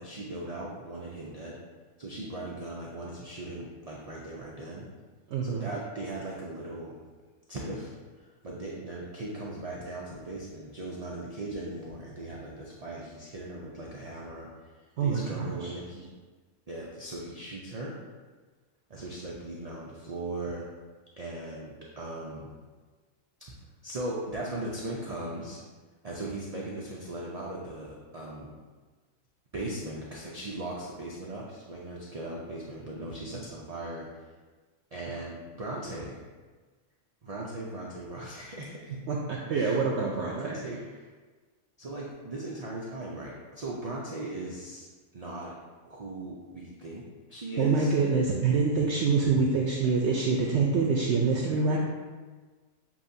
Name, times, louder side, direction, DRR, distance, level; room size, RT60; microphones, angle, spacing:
voice 1, 0.0-1.6 2.0-4.9 5.4-7.0 7.5-7.9 8.2-14.5 15.0-16.1 16.7-17.9 18.9-20.6 21.2-22.5 23.8-25.6 26.0-28.5 29.5-34.1 34.9-36.2 37.2-39.0 39.5-39.9 40.2-40.8 41.8-44.9 45.1-45.5 45.9-47.0 47.3-48.0 51.4-51.6, right 2 dB, 85° right, -4 dB, 0.3 m, -38 dB
voice 2, 5.3-5.7 15.0-15.7 33.2-33.4 39.1-40.6 47.6-51.8, right 4 dB, 65° right, -2 dB, 0.7 m, -26 dB
7.1 x 2.7 x 2.7 m, 1.4 s
omnidirectional pair, 1.5 m